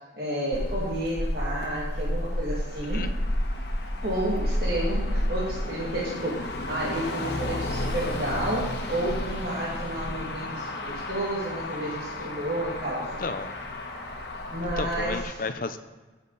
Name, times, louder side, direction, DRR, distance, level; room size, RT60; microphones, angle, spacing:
voice 1, 0.2-3.1 4.0-13.2 14.5-15.2, right 1 dB, 55° right, -6 dB, 2.4 m, -31 dB
Motor vehicle (road), 0.5-15.2, left 1 dB, 65° left, 1.5 m, -31 dB
voice 2, 2.8-3.1 13.2-13.6 14.8-15.8, left 3 dB, 50° left, 9 dB, 0.7 m, -33 dB
16.0 x 7.3 x 4.1 m, 1.3 s
head